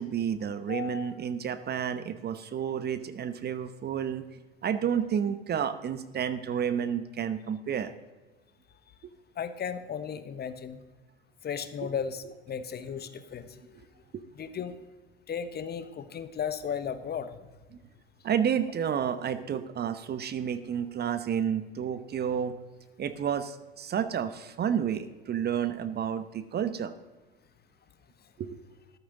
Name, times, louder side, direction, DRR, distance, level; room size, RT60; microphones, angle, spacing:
voice 1, 0.0-4.2 4.6-7.9 11.8-11.9 13.8-13.9 14.1-14.2 18.2-22.5 23.0-26.9 28.4-28.6, right 8 dB, 35° right, 12 dB, 0.9 m, -30 dB
voice 2, 0.7-1.1 9.4-10.8 11.4-13.8 14.3-14.7 15.3-17.4, left 7 dB, 30° left, 12 dB, 1.1 m, -35 dB
14.0 x 12.0 x 3.9 m, 1.2 s
figure-of-eight pair, 70°, 30 cm